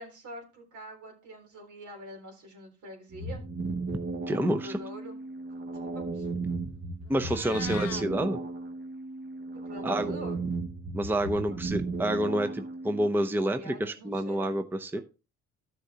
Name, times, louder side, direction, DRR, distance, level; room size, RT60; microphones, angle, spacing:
voice 1, 0.0-3.4 4.4-5.2 5.9-6.3 7.5-7.9 9.7-10.5 11.3-11.6 13.5-14.5 14.9-15.0, right 1 dB, 75° right, 1 dB, 3.6 m, -45 dB
sound 1, 3.1-13.1, right 3 dB, 35° right, 1.2 m, -35 dB
voice 2, 4.3-4.8 7.1-8.4 9.8-10.1 10.9-15.0, right 1 dB, 5° right, 7 dB, 0.7 m, -28 dB
Meow, 7.1-8.0, left 9 dB, 50° left, 0.8 m, -41 dB
13.0 x 6.4 x 2.9 m, 0.32 s
cardioid pair, 90°, 30 cm